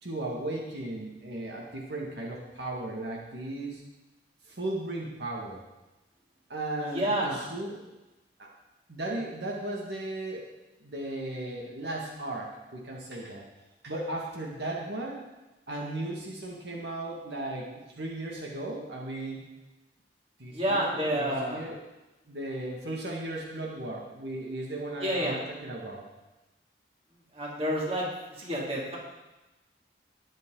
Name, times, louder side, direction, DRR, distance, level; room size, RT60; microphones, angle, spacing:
voice 1, 0.0-3.8 4.5-5.6 6.5-7.9 8.4-8.5 8.9-10.5 10.8-13.4 13.8-15.2 15.7-17.7 18.0-19.4 20.4-21.8 22.3-26.1, right 1 dB, 75° right, -2 dB, 2.0 m, -36 dB
voice 2, 6.8-7.4 20.5-21.7 25.0-25.4 27.3-28.1 28.4-29.0, right 1 dB, 35° right, -4 dB, 2.9 m, -29 dB
20.5 x 7.6 x 3.9 m, 1.0 s
head